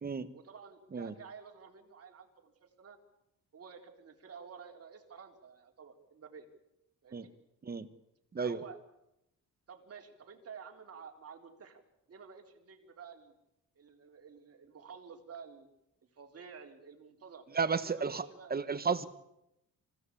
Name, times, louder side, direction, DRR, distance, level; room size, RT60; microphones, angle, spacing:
voice 1, 0.3-3.0 3.5-6.5 7.0-7.3 8.4-8.8 9.7-11.8 12.1-13.3 13.8-15.7 16.1-17.4 17.8-18.5, right 6 dB, 45° right, 3 dB, 3.6 m, -51 dB
voice 2, 17.5-18.2 18.5-19.1, right 5 dB, 30° right, 13 dB, 1.2 m, -32 dB
25.5 x 16.5 x 8.5 m, 0.85 s
wide cardioid pair, 145°, 33 cm